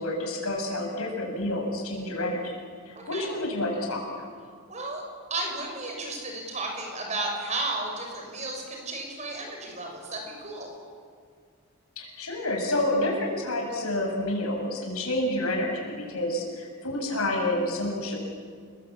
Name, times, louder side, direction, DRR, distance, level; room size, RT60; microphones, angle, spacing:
voice 1, 0.0-2.5 2.8-4.3 12.0-18.2, left 1 dB, 90° left, 1 dB, 7.1 m, -29 dB
voice 2, 2.9-3.3 4.7-5.0 5.3-10.7, right 2 dB, 30° right, 2 dB, 6.3 m, -33 dB
30.0 x 22.0 x 8.7 m, 2.1 s
head